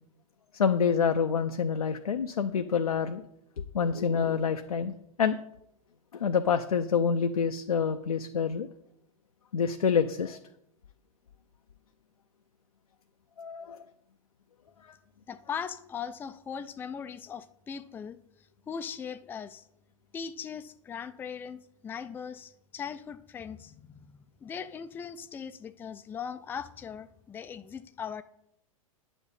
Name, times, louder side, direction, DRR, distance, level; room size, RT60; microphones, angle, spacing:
voice 1, 0.5-3.2 3.6-5.4 6.1-8.7 9.5-10.4 13.4-13.8 14.8-15.0, left 6 dB, 80° left, 7 dB, 0.5 m, -27 dB
voice 2, 15.3-18.2 18.7-19.7 20.1-24.1 24.4-28.2, left 7 dB, 10° left, 11 dB, 0.4 m, -39 dB
9.9 x 7.1 x 4.1 m, 0.78 s
figure-of-eight pair, 100°, 18 cm